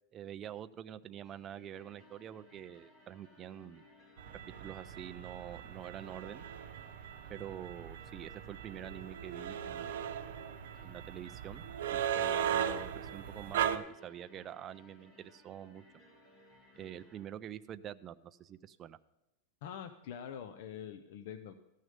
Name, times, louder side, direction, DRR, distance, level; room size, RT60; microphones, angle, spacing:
voice 1, 0.1-3.8 4.6-6.4 7.3-10.0 10.8-11.6 11.9-16.0 16.8-19.0, right 10 dB, 20° right, 11 dB, 0.3 m, -46 dB
sound 1, 1.2-17.2, equal, 25° left, 2.6 m, -62 dB
sound 2, 4.2-13.8, right 9 dB, 80° right, 0.7 m, -38 dB
voice 2, 19.6-21.7, left 8 dB, 55° left, 8 dB, 0.6 m, -45 dB
13.5 x 6.4 x 5.2 m, 0.94 s
supercardioid pair, 165°, 0 cm